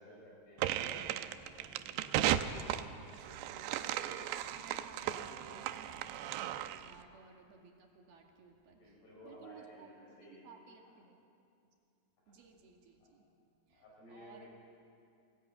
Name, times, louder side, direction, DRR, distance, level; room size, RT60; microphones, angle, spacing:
voice 1, 0.0-2.2 3.5-3.7 6.9-7.0 8.7-10.5 10.9-11.0 12.3-12.4 13.0-13.1 13.7-14.5, equal, 70° left, -3 dB, 7.5 m, -57 dB
sound 1, 0.6-6.9, right 12 dB, 90° right, 2.9 m, -36 dB
voice 2, 3.1-9.9 10.3-11.2 12.3-13.2 13.7-13.8 14.1-14.5, right 5 dB, 65° right, 1 dB, 4.0 m, -58 dB
23.0 x 18.5 x 9.4 m, 2.5 s
omnidirectional pair, 4.8 m